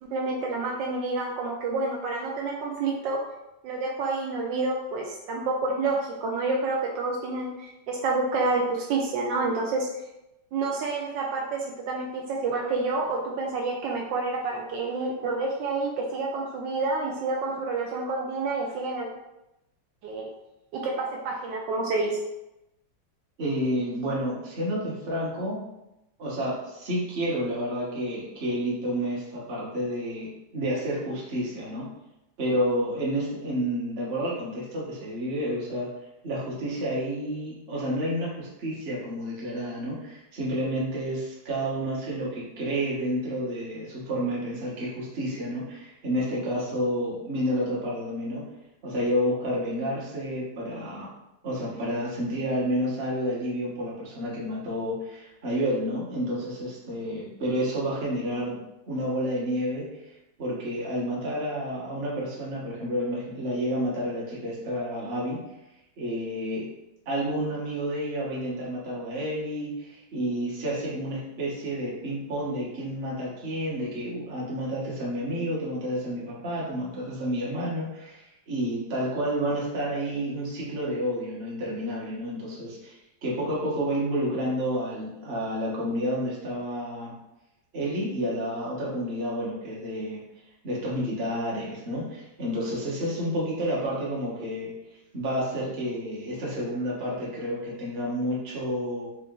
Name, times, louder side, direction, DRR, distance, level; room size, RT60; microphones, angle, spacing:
voice 1, 0.0-3.2 3.6-9.9 10.5-11.6 11.9-19.1 20.0-20.3 20.7-22.2, right 3 dB, 75° right, -1 dB, 1.2 m, -28 dB
voice 2, 23.4-25.6 26.2-31.9 32.4-35.9 36.2-48.4 48.8-51.1 51.4-58.6 58.9-60.0 60.4-65.4 66.0-66.7 67.1-87.1 87.7-90.2 90.6-94.7 95.1-99.1, equal, 40° right, -6 dB, 1.1 m, -30 dB
3.8 x 2.5 x 3.6 m, 0.91 s
omnidirectional pair, 2.1 m